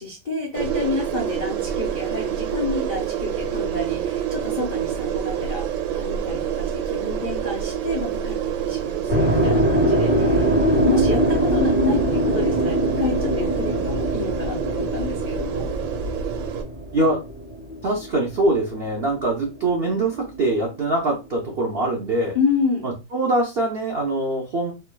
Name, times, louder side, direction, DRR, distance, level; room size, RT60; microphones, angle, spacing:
voice 1, 0.0-5.6 5.9-15.7 22.3-22.8, left 3 dB, 55° left, -3 dB, 0.4 m, -29 dB
sound 1, 0.5-16.6, right 9 dB, 85° right, 1.3 m, -28 dB
sound 2, 9.1-19.2 19.5-21.1, equal, 30° right, 1.3 m, -23 dB
voice 2, 9.3-9.7 16.9-17.2 17.8-22.3 22.8-24.7, right 2 dB, 65° right, -1 dB, 0.6 m, -23 dB
4.4 x 3.0 x 2.2 m, 0.27 s
omnidirectional pair, 2.1 m